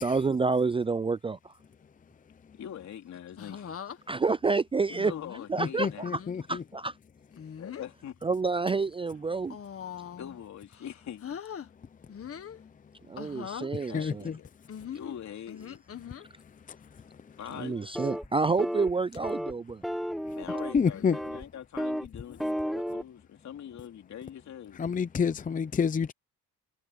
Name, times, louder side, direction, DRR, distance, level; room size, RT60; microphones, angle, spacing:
voice 1, 0.0-1.5 4.1-5.1 5.5-6.2 6.5-6.9 8.2-9.6 13.1-14.3 17.6-19.8, right 4 dB, 20° right, 0.4 m, -28 dB
voice 2, 2.5-3.8 5.0-6.6 7.6-8.2 10.2-11.3 13.9-14.5 14.8-15.8 17.4-17.8 20.4-24.8, left 9 dB, 65° left, 3.7 m, -43 dB
sound 1, 3.4-4.0 4.9-5.5 6.1-6.3 7.3-7.9 8.4-8.7 9.4-10.4 10.7-11.7 12.1-12.6 13.2-13.7 14.7-16.3 17.5-17.9 18.5-18.9 19.1-19.2 20.8-21.2 22.3-22.6, left 8 dB, 50° left, 1.8 m, -42 dB
voice 3, 5.6-6.6 12.6-12.7 13.7-14.4 16.7-17.0 20.3-20.4 20.7-21.2 24.7-26.1, left 6 dB, 25° left, 0.6 m, -29 dB
sound 2, 17.9-18.3 18.6-18.9 19.2-19.5 19.8-20.8 21.1-21.4 21.8-22.1 22.4-23.0, equal, ahead, 1.0 m, -32 dB
cardioid pair, 90°, 30 cm